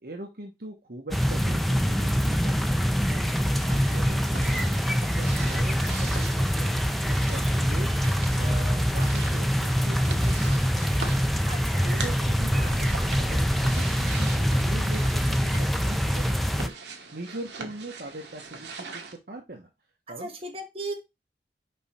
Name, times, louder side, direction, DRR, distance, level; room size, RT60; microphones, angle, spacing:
voice 1, 0.0-3.4 3.8-4.6 4.9-6.7 7.1-7.9 8.3-11.3 11.8-16.7 17.1-19.7 20.1-20.3, right 1 dB, 55° right, 2 dB, 1.2 m, -41 dB
sound 1, 1.1-16.7, equal, ahead, 0.4 m, -24 dB
sound 2, 3.5-19.2, right 4 dB, 75° right, 1.4 m, -42 dB
voice 2, 3.7-4.1 11.5-12.2 20.1-20.9, right 2 dB, 35° right, 1 dB, 1.7 m, -38 dB
5.3 x 5.2 x 4.3 m, 0.23 s
head